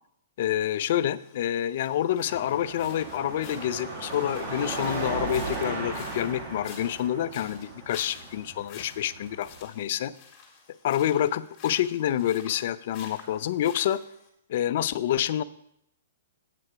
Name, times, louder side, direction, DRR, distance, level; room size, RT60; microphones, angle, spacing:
voice 1, 0.4-10.1 10.8-14.0 14.5-15.4, left 11 dB, 55° left, 16 dB, 0.4 m, -27 dB
sound 1, 0.6-14.3, left 6 dB, 25° left, 2.5 m, -50 dB
Car passing by / Traffic noise roadway noise / Engine, 2.3-9.6, right 3 dB, 40° right, 1.9 m, -36 dB
8.4 x 5.9 x 5.9 m, 0.75 s
hypercardioid pair, 150°, 0 cm